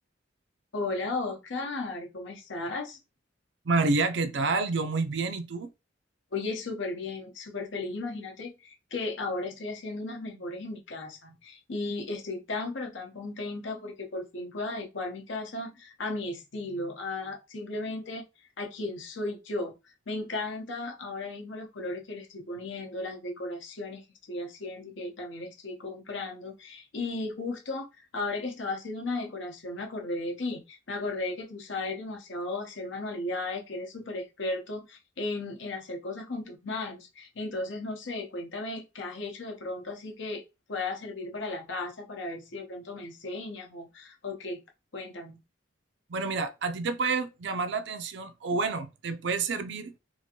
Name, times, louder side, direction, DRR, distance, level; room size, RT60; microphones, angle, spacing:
voice 1, 0.7-3.0 6.3-18.2 18.6-19.7 20.1-40.4 40.7-44.6 44.9-45.4, left 2 dB, 70° left, 0.8 m, -35 dB
voice 2, 3.7-5.7 46.1-49.9, right 3 dB, 60° right, 0.4 m, -29 dB
2.8 x 2.5 x 2.8 m
head